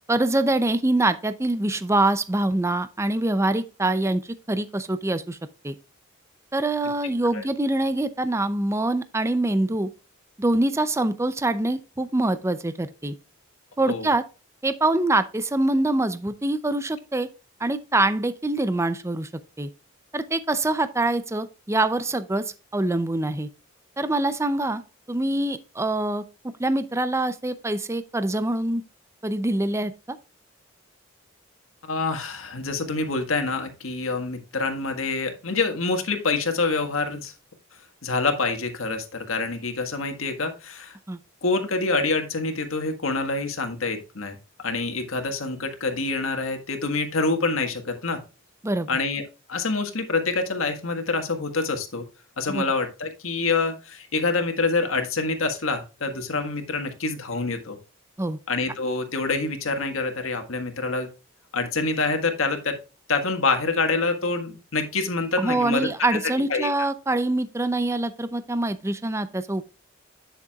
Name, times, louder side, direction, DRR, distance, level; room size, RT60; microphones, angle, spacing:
voice 1, 0.1-4.2 4.5-5.4 5.6-5.7 6.5-9.9 10.4-13.1 13.8-14.2 14.6-17.3 17.6-19.3 19.6-19.7 20.1-23.5 24.0-24.8 25.1-26.2 26.6-28.8 29.2-30.2 41.1-41.2 48.6-48.9 52.5-52.6 58.2-58.4 65.4-69.7, right 2 dB, 15° right, 0.5 m, -24 dB
voice 2, 31.9-37.3 38.0-41.0 41.4-48.2 48.9-49.2 49.5-52.0 52.4-57.8 58.5-61.1 61.5-62.8 63.1-66.2 66.5-66.7, left 3 dB, 85° left, 1.7 m, -26 dB
10.5 x 6.6 x 2.4 m
head